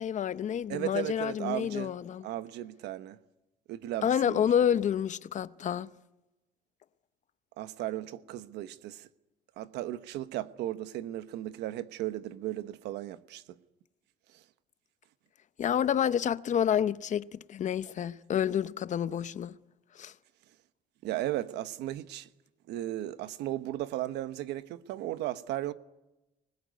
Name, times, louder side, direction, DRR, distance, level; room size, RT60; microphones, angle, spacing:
voice 1, 0.0-2.2 4.0-5.9 15.6-19.6 20.0-20.1, left 9 dB, 45° left, 0.8 m, -29 dB
voice 2, 0.7-1.9 2.2-3.2 3.7-4.4 7.6-9.1 9.6-13.4 21.0-22.3 22.7-25.7, right 14 dB, 85° right, 1.1 m, -35 dB
25.0 x 20.5 x 9.5 m
cardioid pair, 110°, 17 cm